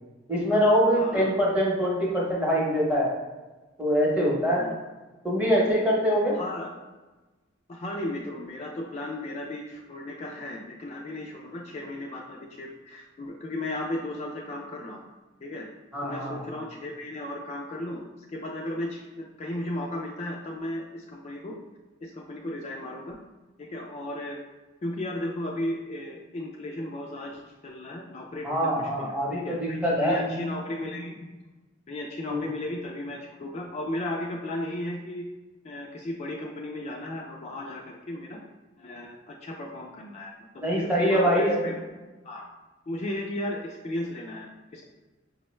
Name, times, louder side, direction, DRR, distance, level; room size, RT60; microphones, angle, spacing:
voice 1, 0.3-3.1 3.8-4.7 5.2-6.4 15.9-16.4 28.4-30.3 32.3-32.4 40.6-41.6, equal, 5° right, -4 dB, 0.8 m, -24 dB
voice 2, 0.9-1.3 4.6-4.8 6.3-6.7 7.7-15.0 15.4-15.7 16.0-21.6 22.0-23.2 23.6-24.4 24.8-29.1 29.4-31.3 31.9-35.3 35.6-38.4 38.8-40.3 40.8-41.9 42.2-42.4 42.9-44.8, left 1 dB, 35° left, -1 dB, 0.3 m, -35 dB
5.2 x 2.1 x 3.0 m, 1.2 s
head